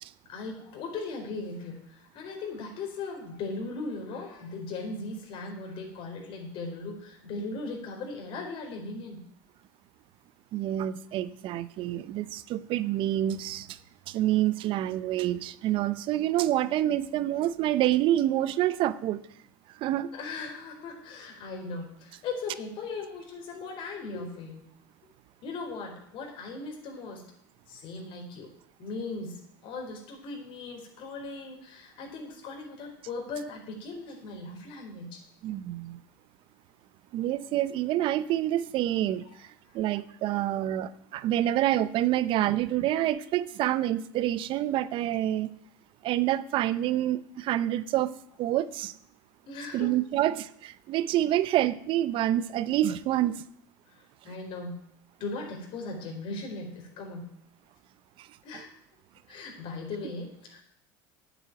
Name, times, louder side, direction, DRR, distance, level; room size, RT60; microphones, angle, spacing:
voice 1, 0.3-9.2 20.1-24.6 25.4-27.2 27.7-28.5 28.8-35.2 39.7-39.8 49.5-49.9 53.9-54.8 55.2-57.2 58.4-58.7 59.3-60.6, left 3 dB, 55° left, 2 dB, 4.4 m, -38 dB
voice 2, 10.5-13.8 14.1-19.2 19.8-20.1 35.4-36.0 37.1-39.5 39.7-45.5 46.0-48.1 48.4-48.9 49.7-53.4 58.2-58.3 58.5-58.6, right 13 dB, 55° right, 16 dB, 0.8 m, -27 dB
9.3 x 8.1 x 9.2 m, 0.70 s
supercardioid pair, 100°, 10 cm